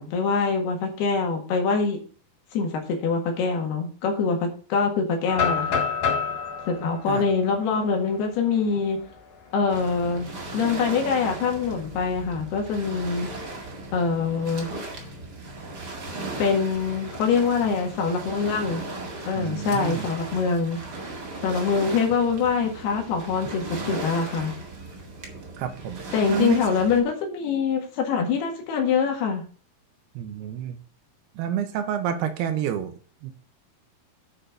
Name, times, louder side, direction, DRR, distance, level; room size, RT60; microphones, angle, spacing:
voice 1, 0.0-2.0 2.5-5.8 6.7-9.0 9.5-13.3 13.9-14.7 16.4-18.8 19.3-20.8 21.4-24.5 26.1-29.5, left 5 dB, 80° left, 2 dB, 3.7 m, -24 dB
sound 1, 5.3-9.2 9.6-9.7 10.2-10.5 11.8-12.7, left 6 dB, 60° left, 3.7 m, -29 dB
Waves surf, 9.7-27.0, right 2 dB, 35° right, 1.7 m, -37 dB
voice 2, 19.4-20.1 25.6-26.6 30.1-30.8 31.3-33.3, right 9 dB, 80° right, 7 dB, 3.0 m, -29 dB
9.0 x 5.8 x 5.1 m, 0.41 s
omnidirectional pair, 4.6 m